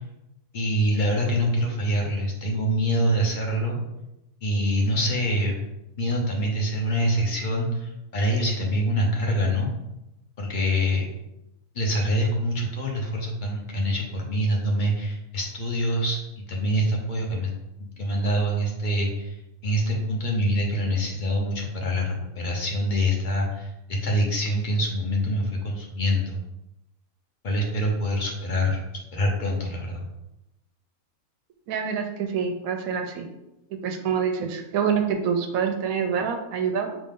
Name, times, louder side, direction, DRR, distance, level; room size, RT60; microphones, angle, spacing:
voice 1, 0.5-3.8 4.4-5.5 6.0-9.7 10.4-11.1 11.7-16.2 16.5-17.5 18.0-19.4 19.6-26.4 27.4-28.8 29.1-30.0, equal, 40° left, -1 dB, 0.8 m, -25 dB
voice 2, 31.7-33.3 33.8-36.9, right 7 dB, 70° right, 5 dB, 1.0 m, -26 dB
5.2 x 2.7 x 3.7 m, 0.92 s
omnidirectional pair, 1.7 m